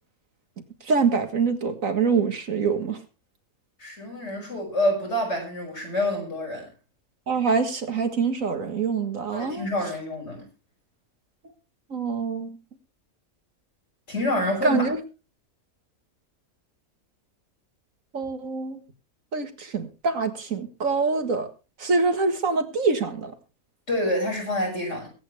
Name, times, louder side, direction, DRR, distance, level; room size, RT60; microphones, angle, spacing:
voice 1, 0.8-3.0 7.3-9.7 11.9-12.6 14.6-15.0 18.1-18.8 19.3-21.5 21.8-23.3, right 4 dB, 65° right, 2.0 m, -25 dB
voice 2, 3.8-6.7 9.3-10.5 14.1-14.9 23.9-25.1, left 1 dB, 50° left, 6.9 m, -27 dB
22.0 x 9.1 x 3.4 m
omnidirectional pair, 1.5 m